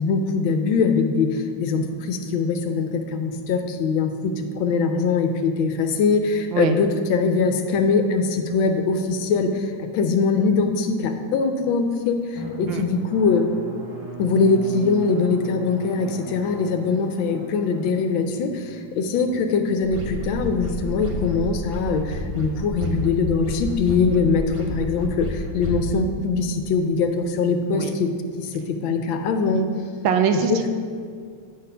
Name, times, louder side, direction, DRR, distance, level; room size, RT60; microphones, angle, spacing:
voice 1, 0.0-13.5 14.2-28.1 28.4-29.7 30.5-30.7, left 4 dB, 75° left, 7 dB, 1.3 m, -22 dB
Drum, 12.4-21.6, right 2 dB, 25° right, 1.2 m, -39 dB
sound 1, 19.8-25.9, left 1 dB, 55° right, 0.3 m, -30 dB
voice 2, 30.0-30.7, right 7 dB, 75° right, 7 dB, 1.2 m, -22 dB
9.4 x 4.1 x 5.4 m, 2.1 s
omnidirectional pair, 2.2 m